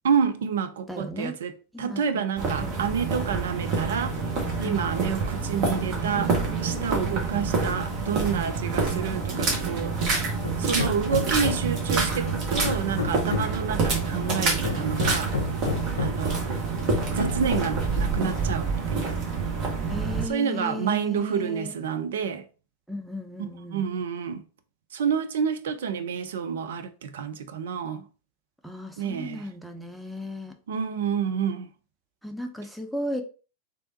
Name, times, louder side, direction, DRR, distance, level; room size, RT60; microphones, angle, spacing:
voice 1, 0.0-1.5 1.8-4.2 4.6-6.3 6.6-10.0 10.6-15.3 16.0-16.5 17.1-19.3 20.3-22.4 23.7-24.4 24.9-28.0 29.0-29.4 30.7-31.7, right 7 dB, 60° right, 0.4 m, -29 dB
voice 2, 0.9-1.4 1.7-2.2 2.6-2.8 4.6-4.8 7.0-7.2 8.5-8.7 19.9-21.8 22.9-23.9 28.6-30.5 32.2-33.2, left 1 dB, ahead, 0.5 m, -35 dB
sound 1, 2.4-20.2, right 4 dB, 40° right, 1.1 m, -27 dB
Hammer, 10.4-11.8 12.3-13.7 14.3-16.3 16.9-17.8, left 5 dB, 70° left, 0.5 m, -31 dB
3.3 x 2.6 x 2.7 m
figure-of-eight pair, 90°, 0 cm